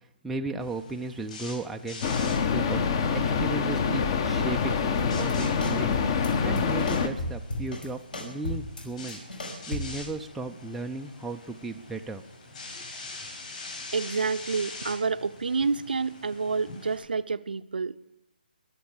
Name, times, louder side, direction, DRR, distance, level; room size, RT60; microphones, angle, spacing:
voice 1, 0.2-2.0 2.5-4.8 5.1-6.0 6.2-9.2 9.7-12.2 12.7-12.9, right 2 dB, 5° right, 3 dB, 0.5 m, -35 dB
sound 1, 0.6-17.0, left 2 dB, 50° left, 7.5 m, -45 dB
sound 2, 2.0-7.1, left 5 dB, 30° left, 1.1 m, -26 dB
sound 3, 5.0-5.3 5.6-6.3 6.6-7.9 8.1-10.0, left 2 dB, 65° left, 5.1 m, -35 dB
voice 2, 13.9-17.9, right 4 dB, 70° right, 11 dB, 0.7 m, -28 dB
22.0 x 7.6 x 7.2 m, 0.95 s
figure-of-eight pair, 150°, 5 cm